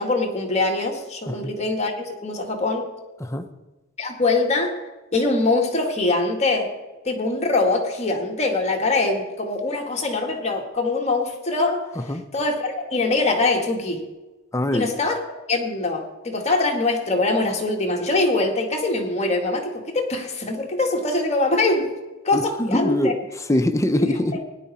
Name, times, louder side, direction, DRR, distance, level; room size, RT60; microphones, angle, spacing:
voice 1, 0.0-2.9 4.0-4.8 5.1-6.7 7.1-11.9 12.3-14.0 14.7-15.2 15.5-21.9 22.2-23.1 23.9-24.1, left 2 dB, 35° left, 1 dB, 1.8 m, -23 dB
voice 2, 14.5-14.9 22.3-24.4, left 1 dB, 15° left, 8 dB, 0.7 m, -23 dB
17.5 x 10.5 x 4.3 m, 1.1 s
head